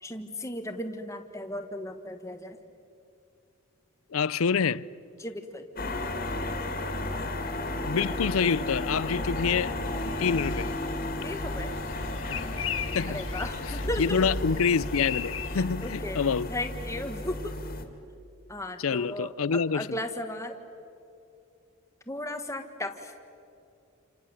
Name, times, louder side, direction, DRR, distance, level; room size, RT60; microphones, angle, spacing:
voice 1, 0.0-2.6 5.2-5.6 11.2-11.7 13.1-14.3 15.8-16.2 16.5-17.6 18.5-20.6 22.1-23.1, left 1 dB, 15° left, 1.7 m, -35 dB
voice 2, 4.1-4.9 7.9-9.7 10.2-10.7 12.9-13.2 13.7-16.5 18.8-20.0, left 6 dB, 90° left, 0.5 m, -27 dB
sound 1, 5.8-17.8, left 1 dB, 45° left, 2.5 m, -33 dB
sound 2, 9.8-15.6, left 8 dB, 70° left, 1.5 m, -39 dB
28.5 x 28.0 x 7.4 m
head